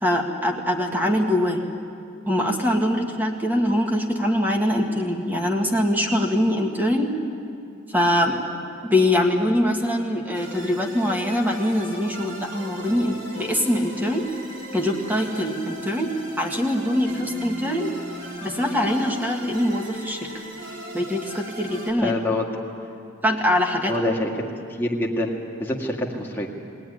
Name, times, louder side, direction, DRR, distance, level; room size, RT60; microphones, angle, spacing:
voice 1, 0.0-1.6 2.3-7.1 7.9-8.4 8.8-14.3 14.7-17.9 18.4-20.3 20.9-22.1 23.2-23.9, left 1 dB, 10° right, 2 dB, 1.8 m, -23 dB
sound 1, 10.3-21.9, right 1 dB, 60° right, 3.9 m, -38 dB
voice 2, 22.0-22.5 23.9-24.3 24.8-25.3 25.6-26.5, left 1 dB, 10° left, -2 dB, 2.1 m, -25 dB
21.5 x 17.5 x 10.0 m, 2.6 s
head